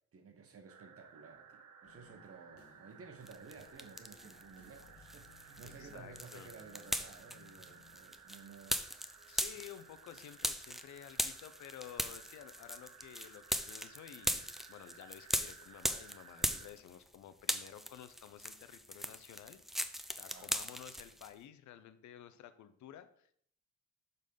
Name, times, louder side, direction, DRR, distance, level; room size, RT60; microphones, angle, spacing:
voice 1, 0.1-8.8 20.3-20.6, right 5 dB, 50° right, 1.3 m, -54 dB
sound 1, 0.7-16.7, right 7 dB, 75° right, 1.2 m, -58 dB
sound 2, 1.8-8.0, left 5 dB, 50° left, 1.3 m, -63 dB
sound 3, 3.3-4.4 4.8-17.1 17.4-21.3, equal, ahead, 0.5 m, -39 dB
voice 2, 5.6-6.5 9.3-19.6 20.2-23.3, left 10 dB, 70° left, 0.8 m, -53 dB
6.6 x 4.1 x 5.4 m
cardioid pair, 90°, 30 cm